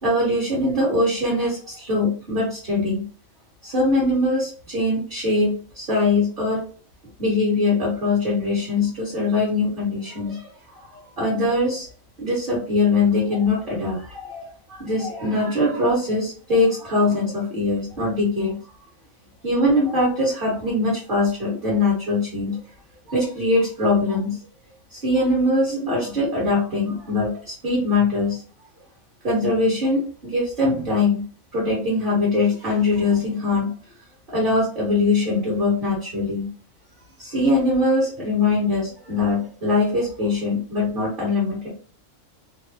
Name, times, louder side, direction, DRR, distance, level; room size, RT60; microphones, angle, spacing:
voice 1, 0.0-3.1 3.6-6.6 7.2-10.9 11.2-11.9 12.2-18.6 19.4-22.6 23.1-24.4 24.9-28.4 29.2-31.2 31.5-33.7 34.3-36.5 37.2-41.7, left 2 dB, 40° right, -7 dB, 1.6 m, -22 dB
3.7 x 2.0 x 2.7 m, 0.41 s
omnidirectional pair, 1.4 m